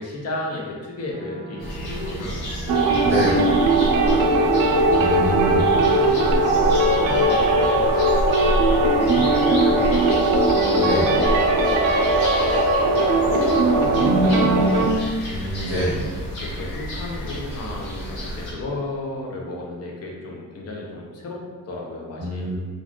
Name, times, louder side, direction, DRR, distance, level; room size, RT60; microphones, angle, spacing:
voice 1, 0.0-2.4 3.4-3.5 3.8-4.5 5.4-6.5 7.0-7.9 8.6-10.2 10.7-11.8 12.9-14.6 16.1-21.4 21.7-22.5, left 2 dB, 45° left, -2 dB, 0.7 m, -33 dB
sound 1, 1.1-7.3, right 1 dB, 30° right, 0.7 m, -39 dB
sound 2, 1.6-18.5, equal, 65° left, 1.0 m, -30 dB
sound 3, 2.7-14.9, right 2 dB, 70° right, 0.5 m, -19 dB
voice 2, 3.0-3.4 5.0-5.6 10.8-11.1 15.3-16.0 22.2-22.5, equal, 10° right, -13 dB, 1.1 m, -25 dB
2.5 x 2.3 x 3.5 m, 1.5 s
cardioid pair, 140°, 35 cm